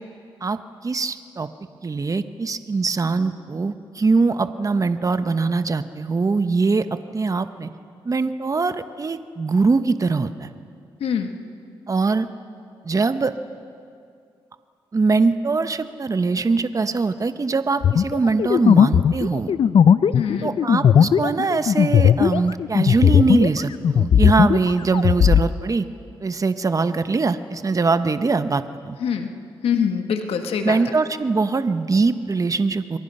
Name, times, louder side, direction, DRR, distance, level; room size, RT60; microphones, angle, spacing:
voice 1, 0.4-1.5 1.8-7.7 8.0-10.5 11.9-12.3 12.8-13.3 14.9-19.5 20.4-25.8 26.2-29.0 30.6-33.0, right 4 dB, 35° right, 10 dB, 1.0 m, -22 dB
voice 2, 11.0-11.3 20.1-20.5 29.0-29.3 29.6-30.8, left 7 dB, 85° left, 5 dB, 1.6 m, -24 dB
sound 1, 17.8-23.6 23.8-25.5, left 8 dB, 65° left, 0.6 m, -16 dB
28.5 x 23.5 x 5.5 m, 2.3 s
cardioid pair, 65°, 10 cm